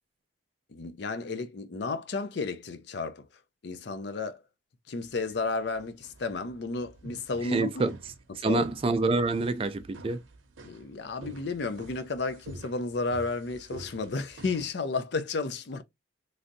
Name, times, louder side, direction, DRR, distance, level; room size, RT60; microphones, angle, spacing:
voice 1, 0.7-3.3 3.6-4.4 4.9-7.8 8.4-8.6 10.6-15.8, left 3 dB, 55° left, 0.5 m, -32 dB
sound 1, 5.0-14.7, right 2 dB, 85° right, 0.7 m, -49 dB
voice 2, 7.4-8.0 8.4-10.2, right 3 dB, 30° right, 0.3 m, -27 dB
3.2 x 2.6 x 2.6 m
head